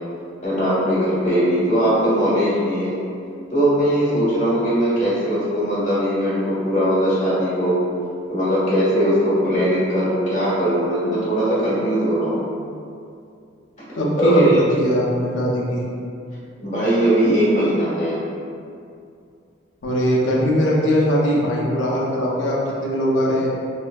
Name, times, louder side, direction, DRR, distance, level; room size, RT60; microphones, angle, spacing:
voice 1, 0.4-3.0 3.5-7.8 8.3-12.4 14.2-14.6 16.6-18.2, equal, 40° left, -10 dB, 1.1 m, -20 dB
voice 2, 13.9-15.8 19.8-23.5, equal, 70° left, -4 dB, 0.6 m, -20 dB
3.3 x 2.6 x 2.2 m, 2.4 s
head